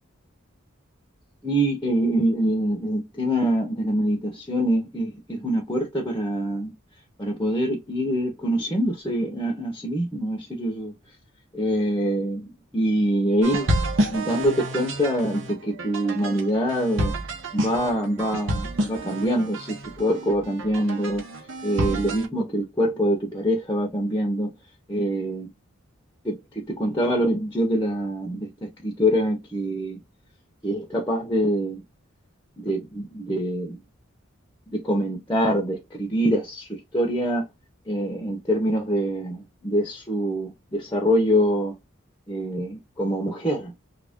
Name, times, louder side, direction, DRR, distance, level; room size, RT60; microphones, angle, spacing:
voice 1, 1.4-6.7 7.2-10.9 11.5-13.7 14.1-17.1 17.5-21.2 21.6-24.5 24.9-25.5 26.2-30.0 30.6-31.8 32.6-33.8 34.7-37.4 37.9-41.8 42.3-43.7, equal, 15° left, 0.7 m, -25 dB
sound 1, 13.4-22.3, right 1 dB, 60° right, 0.9 m, -29 dB
3.0 x 2.5 x 3.5 m
head